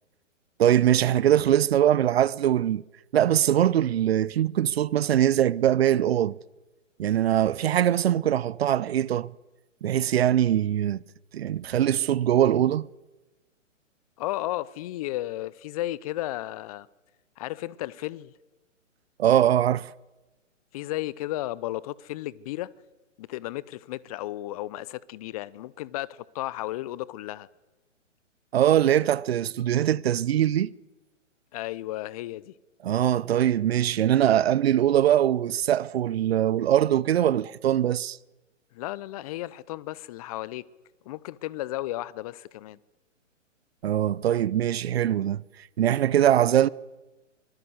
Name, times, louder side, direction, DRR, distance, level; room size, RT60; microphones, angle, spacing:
voice 1, 0.6-2.8 3.1-6.4 7.0-9.3 9.8-11.0 11.3-12.9 19.2-19.9 28.5-30.7 32.8-38.2 43.8-45.4 45.8-46.7, right 11 dB, 50° right, 0.8 m, -22 dB
voice 2, 14.2-16.9 17.4-18.3 20.7-22.7 23.2-27.5 31.5-32.5 38.7-40.6 41.0-42.8, left 16 dB, 30° left, 0.7 m, -34 dB
24.5 x 22.5 x 7.9 m
figure-of-eight pair, 130°, 38 cm